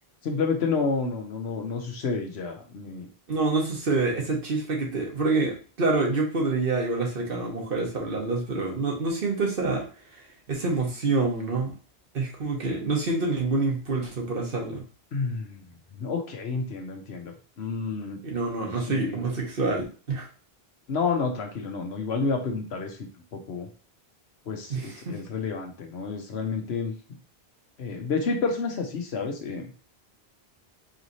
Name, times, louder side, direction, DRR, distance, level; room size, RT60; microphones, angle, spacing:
voice 1, 0.2-3.1 15.1-18.2 18.8-19.2 20.9-23.7 24.5-26.9 27.8-29.7, left 4 dB, 85° left, 3 dB, 1.1 m, -30 dB
voice 2, 3.3-9.8 10.1-11.7 12.1-14.8 18.2-20.3 24.7-25.2, right 3 dB, 60° right, 0 dB, 1.3 m, -27 dB
4.9 x 3.1 x 2.7 m, 0.37 s
omnidirectional pair, 1.1 m